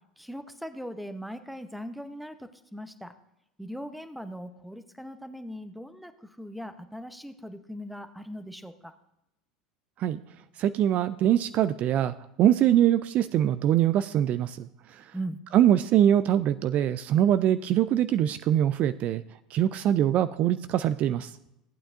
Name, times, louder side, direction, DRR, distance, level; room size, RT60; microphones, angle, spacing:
voice 1, 0.2-3.1 3.6-8.9 15.1-15.4, equal, ahead, 10 dB, 0.8 m, -39 dB
voice 2, 10.6-14.7 15.5-19.2 19.5-21.3, right 11 dB, 45° right, 14 dB, 0.3 m, -23 dB
15.0 x 8.7 x 2.5 m, 0.86 s
hypercardioid pair, 75°, 3 cm